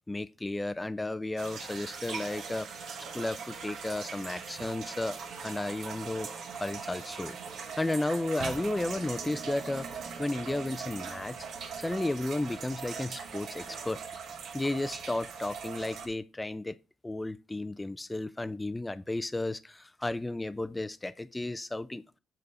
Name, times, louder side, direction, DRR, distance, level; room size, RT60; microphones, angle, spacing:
voice 1, 0.1-2.7 3.1-5.2 5.4-6.3 6.5-7.4 7.8-9.9 10.2-11.4 11.8-14.0 14.5-16.8 17.0-22.0, left 2 dB, 15° left, 0.4 m, -33 dB
sound 1, 1.4-16.1, right 6 dB, 70° right, 1.1 m, -40 dB
6.6 x 5.0 x 4.2 m
cardioid pair, 90°, 0 cm